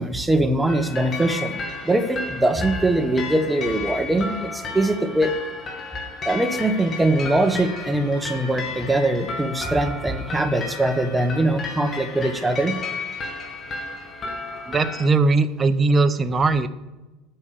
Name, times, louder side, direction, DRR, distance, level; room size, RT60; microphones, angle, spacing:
voice 1, 0.0-5.3 6.3-12.7, right 1 dB, 10° right, 8 dB, 1.0 m, -22 dB
sound 1, 0.7-15.1, left 3 dB, 30° left, 2.1 m, -33 dB
voice 2, 14.7-16.7, right 3 dB, 25° right, 11 dB, 0.7 m, -19 dB
8.8 x 6.4 x 7.0 m, 1.1 s
supercardioid pair, 110°, 0 cm